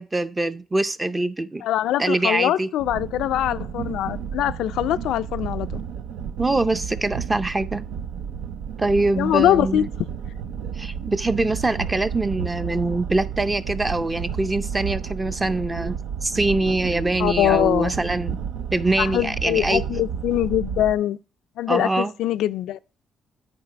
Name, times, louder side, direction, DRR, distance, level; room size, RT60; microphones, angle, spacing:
voice 1, 0.0-1.6 2.0-2.7 6.4-7.8 8.8-9.9 10.8-18.4 18.7-19.8 21.7-22.1, right 2 dB, 20° right, 0.6 m, -24 dB
voice 2, 1.6-5.8 9.2-9.9 17.2-17.9 19.0-21.2 21.6-22.8, left 12 dB, 85° left, 0.3 m, -23 dB
sound 1, 2.8-20.9, right 7 dB, 90° right, 0.5 m, -32 dB
9.6 x 4.6 x 4.9 m
cardioid pair, 90°, 0 cm